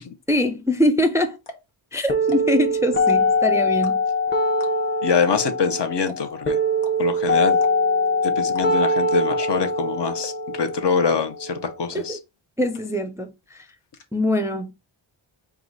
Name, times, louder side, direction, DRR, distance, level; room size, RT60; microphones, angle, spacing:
voice 1, 0.3-1.4 1.9-4.0 11.9-12.2 12.6-13.7 14.1-14.7, left 1 dB, 5° right, 0.4 m, -23 dB
sound 1, 0.9-1.0 1.4-1.7 2.2-2.6 2.9-3.4 3.8-4.2 4.6-4.9 5.3-5.4 5.7-5.8 6.1-6.4 6.8-6.9 7.5-8.0 8.5-8.7 8.9-9.0 9.4-9.7 10.2-10.6 11.1-11.4 11.9-12.0 12.4-12.5 12.7-13.2 13.4-14.0, left 2 dB, 85° left, 1.0 m, -41 dB
sound 2, 2.1-12.1, left 1 dB, 20° left, 0.9 m, -23 dB
voice 2, 5.0-6.6 7.0-7.6 8.2-10.3 10.6-12.2, left 5 dB, 55° left, 0.8 m, -24 dB
4.7 x 2.3 x 3.9 m
wide cardioid pair, 80°, 49 cm